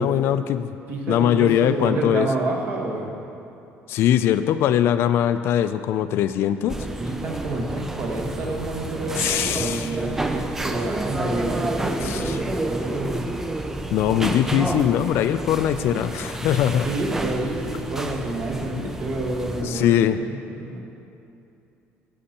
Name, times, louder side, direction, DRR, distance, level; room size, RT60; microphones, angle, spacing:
voice 1, 0.0-0.8 1.1-2.3 3.9-6.8 9.1-9.9 12.0-12.4 13.9-16.9 18.8-18.9 19.6-20.2, left 10 dB, 65° left, 11 dB, 0.3 m, -21 dB
voice 2, 0.9-3.2 7.0-13.3 16.8-20.8, right 2 dB, 50° right, 0 dB, 1.3 m, -28 dB
sound 1, 6.7-19.6, right 2 dB, 10° right, 0.4 m, -30 dB
15.0 x 6.5 x 2.9 m, 2.7 s
cardioid pair, 155°, 5 cm